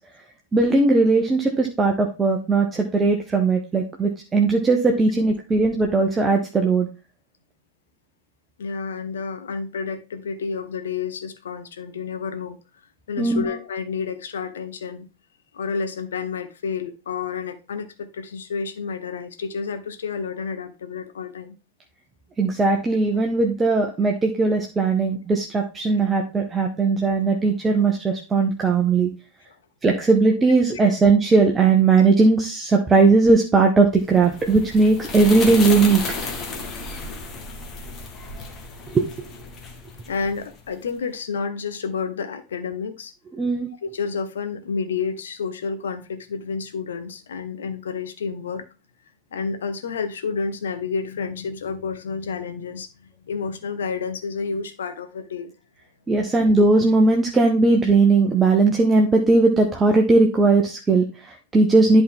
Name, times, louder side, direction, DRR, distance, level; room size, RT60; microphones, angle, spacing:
voice 1, 0.5-6.9 13.2-13.5 22.4-29.1 29.8-36.0 38.9-39.3 43.3-43.7 56.1-62.0, right 3 dB, 15° right, 1.0 m, -18 dB
voice 2, 8.6-12.6 13.1-15.1 15.5-21.6 30.8-30.9 40.1-43.1 43.8-48.6 49.3-52.9 53.3-55.5, left 5 dB, 65° left, 1.1 m, -30 dB
sound 1, 34.1-40.7, left 3 dB, 25° left, 1.7 m, -33 dB
11.0 x 4.3 x 3.7 m
figure-of-eight pair, 90°, 0 cm